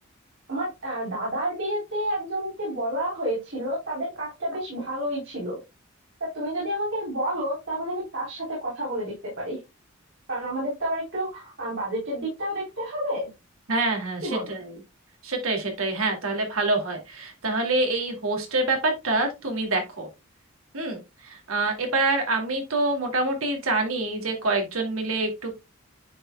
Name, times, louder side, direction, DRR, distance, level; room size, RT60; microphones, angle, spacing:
voice 1, 0.5-5.6 6.3-9.6 10.3-13.3 14.2-14.5, right 1 dB, 60° right, -6 dB, 3.6 m, -30 dB
voice 2, 13.7-14.8 15.2-20.1 20.7-25.5, right 2 dB, 80° right, 3 dB, 2.4 m, -26 dB
9.7 x 5.5 x 2.2 m, 0.24 s
head